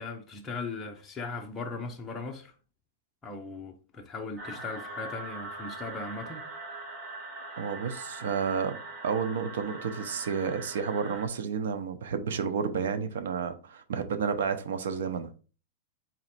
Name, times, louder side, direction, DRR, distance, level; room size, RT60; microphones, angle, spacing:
voice 1, 0.0-2.5 3.2-6.4, left 3 dB, 15° left, 0.7 m, -38 dB
sound 1, 4.4-11.3, right 2 dB, 35° right, 1.3 m, -42 dB
voice 2, 7.6-8.8 9.0-15.3, right 6 dB, 85° right, 0.7 m, -31 dB
4.2 x 3.0 x 4.2 m
supercardioid pair, 155°, 0 cm